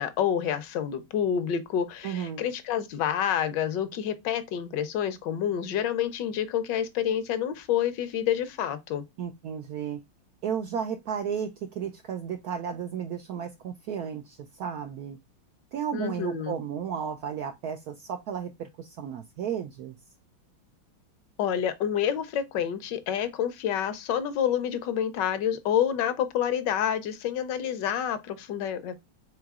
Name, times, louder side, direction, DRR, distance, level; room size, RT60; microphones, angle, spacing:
voice 1, 0.0-9.0 15.9-16.6 21.4-29.0, left 9 dB, 70° left, 1.2 m, -28 dB
voice 2, 2.0-2.4 9.2-10.0 10.4-15.2 15.7-20.0, right 8 dB, 85° right, 0.8 m, -33 dB
4.6 x 3.8 x 2.3 m
omnidirectional pair, 2.2 m